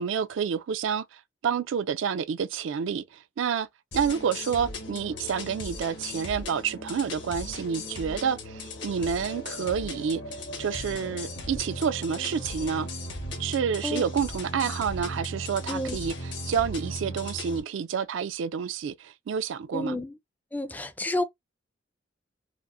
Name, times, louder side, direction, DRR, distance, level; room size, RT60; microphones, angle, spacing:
voice 1, 0.0-3.7 3.9-10.2 10.6-12.9 13.4-20.0, right 7 dB, 75° right, 0.4 m, -29 dB
sound 1, 3.9-17.6, left 1 dB, 65° left, 1.1 m, -37 dB
voice 2, 19.7-20.1 20.5-21.2, left 1 dB, 10° left, 0.4 m, -30 dB
4.9 x 2.0 x 2.5 m
head